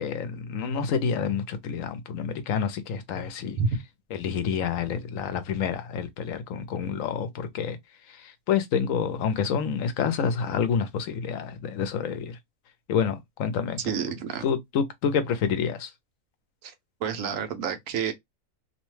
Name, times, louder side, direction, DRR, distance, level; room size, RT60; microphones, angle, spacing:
voice 1, 0.0-3.6 4.1-7.8 8.1-12.4 12.9-13.8 14.4-15.9, left 6 dB, 75° left, 0.9 m, -28 dB
voice 2, 13.8-14.4 16.6-16.7 17.0-18.1, right 6 dB, 75° right, 1.0 m, -29 dB
2.7 x 2.1 x 3.0 m
omnidirectional pair, 1.5 m